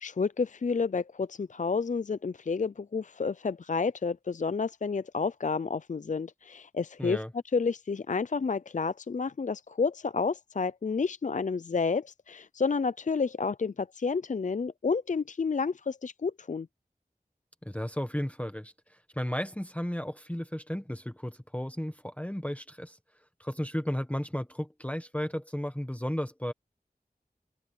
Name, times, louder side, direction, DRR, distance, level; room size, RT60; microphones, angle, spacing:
voice 1, 0.0-7.2 7.5-16.7, left 5 dB, 55° left, 0.4 m, -30 dB
voice 2, 7.0-7.3 17.6-23.0 23.4-26.5, equal, 10° left, 1.1 m, -34 dB
wide cardioid pair, 45°, 16 cm